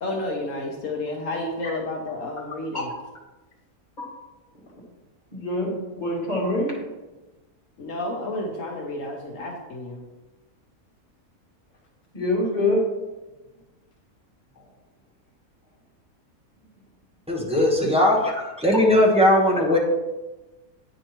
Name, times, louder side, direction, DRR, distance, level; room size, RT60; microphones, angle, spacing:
voice 1, 0.0-2.9 7.8-10.0, left 2 dB, 65° left, 1 dB, 1.2 m, -31 dB
voice 2, 5.3-6.8 12.1-12.9, left 1 dB, 30° left, -5 dB, 2.1 m, -25 dB
voice 3, 17.3-18.3 18.6-19.8, left 1 dB, 5° right, -4 dB, 1.0 m, -18 dB
9.0 x 5.3 x 3.0 m, 1.1 s
omnidirectional pair, 1.5 m